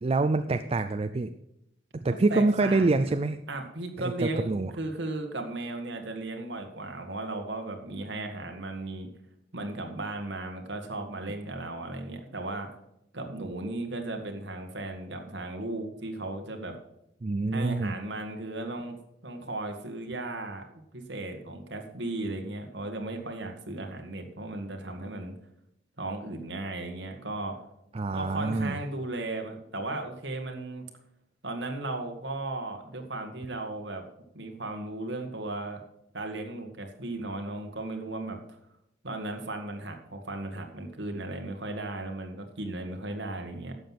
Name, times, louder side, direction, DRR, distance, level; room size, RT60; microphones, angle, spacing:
voice 1, 0.0-1.3 2.0-3.4 4.0-4.7 17.2-17.9 27.9-28.8, right 3 dB, 30° right, 9 dB, 0.4 m, -26 dB
voice 2, 2.0-3.1 3.5-9.1 9.5-12.7 13.1-16.8 17.5-19.0 19.2-25.3 26.0-27.6 28.1-30.8 31.4-34.0 34.3-35.8 36.1-38.6 39.0-43.7, right 2 dB, 65° right, 4 dB, 1.8 m, -36 dB
12.0 x 7.6 x 5.8 m, 0.82 s
head